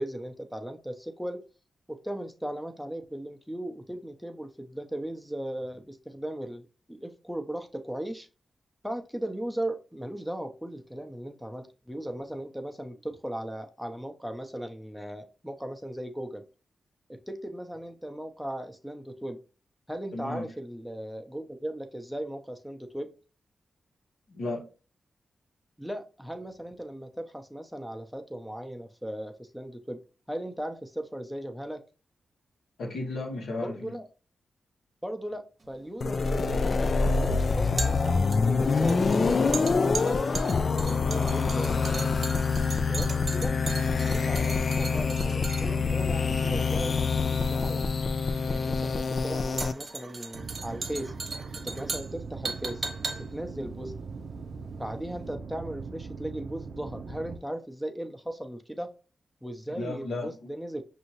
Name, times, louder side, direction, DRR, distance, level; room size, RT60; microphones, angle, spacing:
voice 1, 0.0-1.4 1.9-8.3 8.8-16.4 17.1-19.4 19.9-23.1 25.8-30.0 30.3-31.8 33.6-34.1 35.0-40.2 40.8-42.3 42.8-43.5 43.9-47.8 48.5-51.1 51.6-52.8 53.3-53.9 54.7-58.9 59.4-60.8, right 1 dB, ahead, 0.7 m, -37 dB
voice 2, 20.1-20.4 24.3-24.6 32.8-33.9 59.7-60.3, left 2 dB, 80° left, 1.2 m, -34 dB
sound 1, 35.6-54.9 55.2-55.3, right 3 dB, 50° right, 0.8 m, -39 dB
sound 2, 36.0-49.7, left 4 dB, 55° left, 0.3 m, -26 dB
sound 3, 50.3-57.4, right 4 dB, 70° right, 0.5 m, -40 dB
5.5 x 2.7 x 3.0 m
cardioid pair, 50°, 0 cm